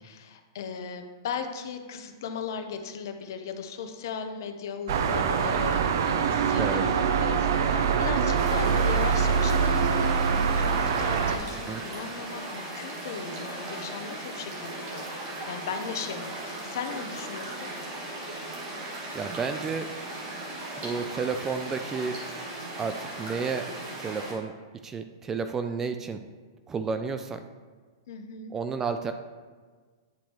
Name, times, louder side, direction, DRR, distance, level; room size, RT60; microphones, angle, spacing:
voice 1, 0.0-15.1 15.5-17.7 28.1-28.5, left 6 dB, 65° left, 7 dB, 0.8 m, -37 dB
sound 1, 4.9-11.4, right 6 dB, 65° right, 0.6 m, -24 dB
sound 2, 8.3-24.3, right 1 dB, 45° right, 2.0 m, -37 dB
voice 2, 19.1-19.9 20.8-22.2 22.8-23.7 24.0-24.5 24.8-26.2 26.7-27.4 28.5-29.1, right 5 dB, 20° right, 8 dB, 0.3 m, -31 dB
9.7 x 4.2 x 3.1 m, 1.5 s
hypercardioid pair, 125°, 2 cm